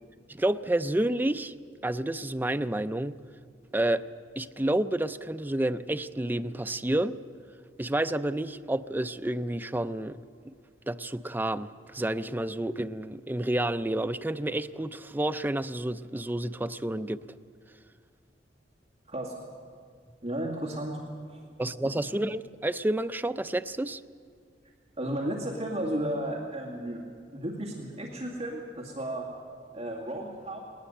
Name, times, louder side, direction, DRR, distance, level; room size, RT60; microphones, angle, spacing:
voice 1, 0.3-1.5 1.8-3.2 3.7-4.0 4.4-7.2 7.8-10.2 10.4-10.5 10.9-17.2 21.6-24.0, right 1 dB, 10° right, 10 dB, 0.5 m, -29 dB
voice 2, 20.2-21.0 21.3-21.4 25.0-27.0 27.3-29.3 29.7-30.6, right 1 dB, 35° right, -2 dB, 2.2 m, -33 dB
20.0 x 19.0 x 8.0 m, 2.1 s
head